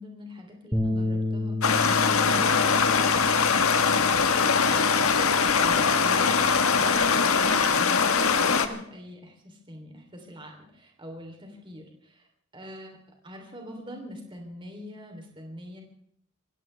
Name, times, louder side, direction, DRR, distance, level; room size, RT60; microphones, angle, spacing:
voice 1, 0.0-12.3 12.5-15.8, equal, 20° right, 2 dB, 3.2 m, -43 dB
Bass guitar, 0.7-7.0, left 2 dB, 5° left, 4.2 m, -33 dB
Stream, 1.6-8.7, left 5 dB, 80° left, 1.4 m, -22 dB
25.5 x 16.5 x 3.4 m, 0.69 s
head